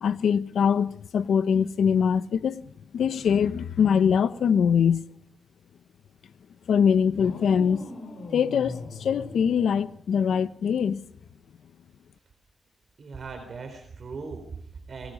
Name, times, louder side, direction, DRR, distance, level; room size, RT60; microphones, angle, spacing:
voice 1, 0.0-2.6 2.9-5.0 6.7-7.8 8.3-11.0, left 7 dB, 90° left, 1.0 m, -23 dB
sound 1, 7.2-10.3, left 3 dB, 70° left, 7.3 m, -41 dB
voice 2, 13.0-15.1, right 4 dB, 50° right, 4.0 m, -39 dB
28.5 x 21.5 x 5.3 m
wide cardioid pair, 140°, 0 cm